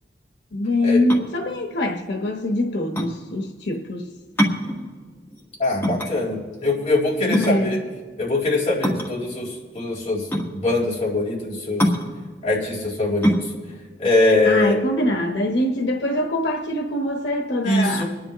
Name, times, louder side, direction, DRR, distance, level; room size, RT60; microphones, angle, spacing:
voice 1, 0.5-4.1 7.3-7.8 14.4-18.0, left 1 dB, 85° left, 3 dB, 1.0 m, -23 dB
sound 1, 1.1-15.3, equal, 10° left, 1.4 m, -26 dB
voice 2, 5.6-7.8 8.2-9.5 9.7-10.3 10.5-11.9 12.4-13.4 14.0-14.8 17.6-18.0, left 2 dB, 35° left, -6 dB, 4.3 m, -22 dB
25.0 x 10.5 x 3.0 m, 1.5 s
head